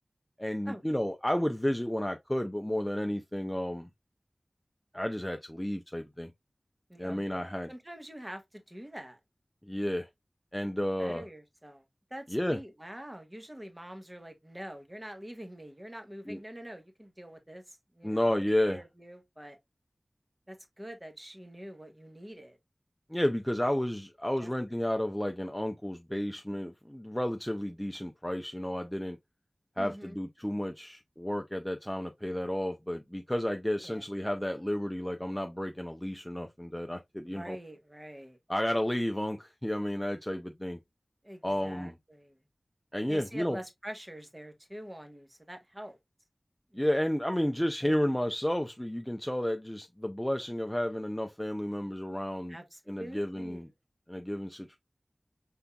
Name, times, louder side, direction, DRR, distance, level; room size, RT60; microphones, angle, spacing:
voice 1, 0.4-3.9 4.9-6.3 7.0-7.7 9.6-10.1 10.5-11.2 12.3-12.6 16.3-16.4 18.0-18.8 23.1-29.2 29.8-37.6 38.5-40.8 41.4-41.9 42.9-43.6 46.7-52.6 52.9-53.7 54.1-54.8, left 1 dB, 10° left, 0.5 m, -32 dB
voice 2, 6.9-9.2 11.0-11.8 12.1-18.4 18.6-19.6 20.5-22.6 23.6-23.8 24.4-24.5 29.8-30.2 33.8-34.0 37.3-38.4 41.2-42.4 43.1-46.0 46.7-46.9 47.6-47.9 52.5-53.7, equal, 20° right, 1.2 m, -45 dB
5.4 x 3.5 x 2.2 m
wide cardioid pair, 55°, 0 cm